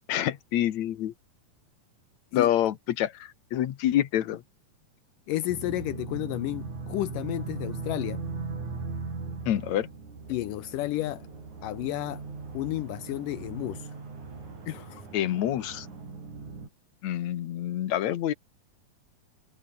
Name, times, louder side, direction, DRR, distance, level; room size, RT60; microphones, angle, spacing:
voice 1, 0.1-1.1 2.3-4.4 9.5-9.9 15.1-15.9 17.0-18.3, left 12 dB, 65° left, 2.3 m, -27 dB
voice 2, 5.3-8.2 10.3-11.3 11.6-12.2 12.5-13.9 14.7-15.1, left 15 dB, 80° left, 2.4 m, -32 dB
sound 1, 5.5-16.7, right 4 dB, 60° right, 7.2 m, -39 dB
omnidirectional pair, 3.9 m